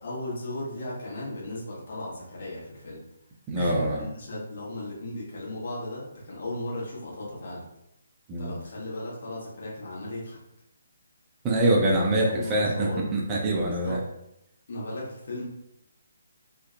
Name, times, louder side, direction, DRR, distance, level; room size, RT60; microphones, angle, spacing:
voice 1, 0.0-3.0 3.5-7.7 8.4-10.4 12.3-13.1 13.6-14.0 14.7-15.4, left 1 dB, 50° left, -5 dB, 1.0 m, -36 dB
voice 2, 3.5-4.0 8.3-8.5 11.4-14.0, right 1 dB, 20° right, -3 dB, 0.4 m, -24 dB
2.5 x 2.1 x 2.5 m, 0.82 s
figure-of-eight pair, 140°, 0 cm